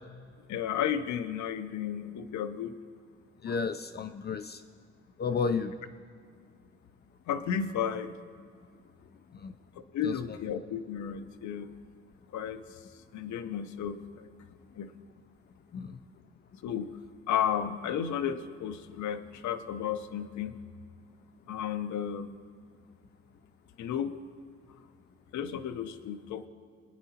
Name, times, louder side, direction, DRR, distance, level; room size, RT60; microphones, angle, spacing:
voice 1, 0.5-2.7 3.5-3.6 7.3-8.1 9.9-11.7 12.3-12.6 13.1-14.3 14.8-14.9 16.6-16.9 17.3-20.5 21.5-22.3 23.8-24.1 25.3-26.5, left 8 dB, 70° left, 10 dB, 0.7 m, -33 dB
voice 2, 3.4-4.6 5.2-5.7 9.4-9.5 10.0-10.4 15.7-16.0, left 5 dB, 35° left, 8 dB, 0.5 m, -32 dB
26.0 x 9.6 x 2.9 m, 2.1 s
cardioid pair, 90°, 30 cm